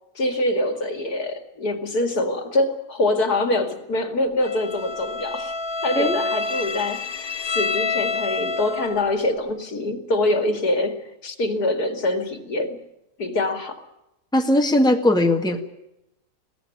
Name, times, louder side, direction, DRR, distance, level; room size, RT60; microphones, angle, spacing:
voice 1, 0.1-5.5 5.8-12.8 13.2-13.8, left 2 dB, 75° left, 7 dB, 2.9 m, -24 dB
Bowed string instrument, 4.4-9.1, left 4 dB, 40° left, 1.2 m, -28 dB
voice 2, 14.3-15.6, left 1 dB, 5° left, 4 dB, 1.8 m, -19 dB
22.0 x 17.0 x 9.1 m, 0.87 s
omnidirectional pair, 1.7 m